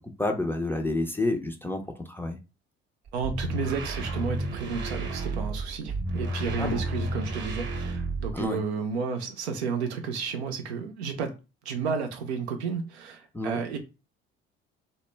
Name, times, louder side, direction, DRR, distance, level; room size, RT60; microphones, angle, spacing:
voice 1, 0.0-2.4 6.6-6.8 8.3-8.6 13.3-13.6, left 2 dB, 5° left, 0.4 m, -29 dB
sound 1, 3.1-8.6, right 2 dB, 35° right, 0.8 m, -32 dB
voice 2, 3.1-11.3 11.6-13.8, right 5 dB, 85° right, 0.6 m, -32 dB
2.2 x 2.0 x 3.2 m
hypercardioid pair, 55°, 32 cm